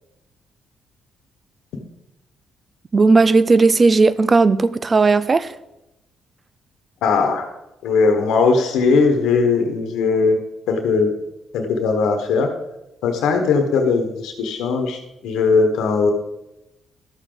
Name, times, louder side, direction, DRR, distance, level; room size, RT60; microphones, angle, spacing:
voice 1, 2.9-5.5, right 3 dB, 30° right, 0.5 m, -15 dB
voice 2, 7.0-7.5 7.8-10.4 10.7-11.1 11.5-12.5 13.0-16.1, left 4 dB, 85° left, 1.2 m, -19 dB
12.5 x 6.9 x 3.9 m
cardioid pair, 90°, 0 cm